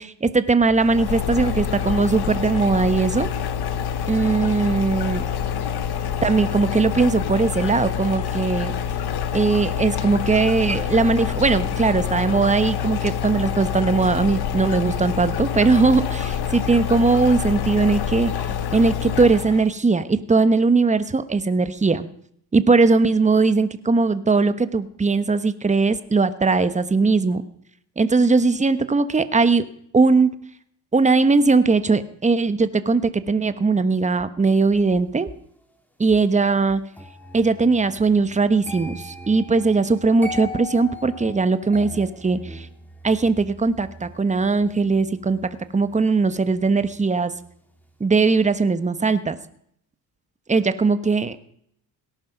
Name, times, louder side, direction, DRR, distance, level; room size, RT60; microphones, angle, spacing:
voice 1, 0.0-3.3 4.1-5.2 6.2-8.7 9.3-22.1 22.5-27.4 28.0-29.7 29.9-30.3 30.9-35.3 36.0-36.8 37.3-42.7 43.0-45.4 45.7-47.3 48.0-49.4 50.5-51.5, right 4 dB, 15° right, 12 dB, 1.2 m, -19 dB
sound 1, 0.8-19.7, left 8 dB, 65° left, 1.4 m, -26 dB
sound 2, 36.9-47.9 48.2-48.6, left 1 dB, 5° left, 2.8 m, -40 dB
18.0 x 10.5 x 6.0 m, 0.68 s
cardioid pair, 95°, 41 cm